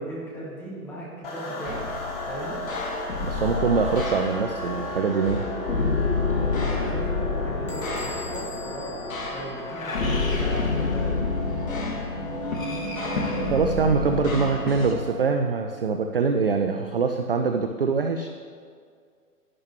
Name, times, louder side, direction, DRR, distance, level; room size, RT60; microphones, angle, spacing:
voice 1, 0.0-1.9 2.3-2.6 6.4-11.1, right 1 dB, 5° left, -7 dB, 2.0 m, -37 dB
sound 1, 1.2-15.8, equal, 40° left, 1.8 m, -37 dB
sound 2, 1.6-14.9, left 3 dB, 60° left, 1.5 m, -29 dB
voice 2, 3.2-5.4 13.5-18.3, right 4 dB, 40° right, 6 dB, 0.4 m, -24 dB
Bell / Door, 7.7-10.2, left 4 dB, 20° left, 0.4 m, -44 dB
11.0 x 10.5 x 3.0 m, 2.1 s
figure-of-eight pair, 125°, 46 cm